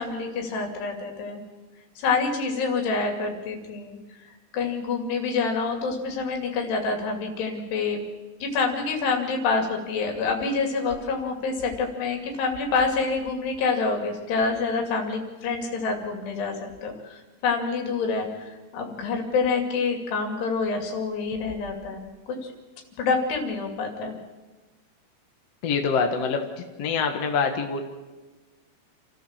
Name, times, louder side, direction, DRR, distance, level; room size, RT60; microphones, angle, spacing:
voice 1, 0.0-1.4 2.0-4.0 4.5-8.1 8.4-22.5 23.0-24.2, left 4 dB, 85° left, 3 dB, 4.7 m, -27 dB
voice 2, 25.6-27.8, left 5 dB, 55° left, 4 dB, 2.0 m, -25 dB
28.5 x 14.0 x 7.4 m, 1.2 s
omnidirectional pair, 4.7 m